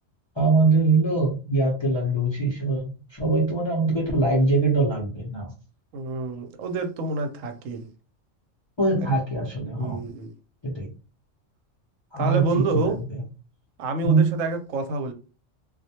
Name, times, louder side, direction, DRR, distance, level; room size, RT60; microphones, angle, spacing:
voice 1, 0.4-5.5 8.8-10.1 10.6-10.9 12.1-12.9 14.0-14.4, right 3 dB, 35° left, 0.4 m, -22 dB
voice 2, 5.9-7.9 9.8-10.3 12.2-13.0 13.8-15.1, right 3 dB, 90° right, 1.0 m, -28 dB
2.3 x 2.1 x 2.8 m
omnidirectional pair, 1.3 m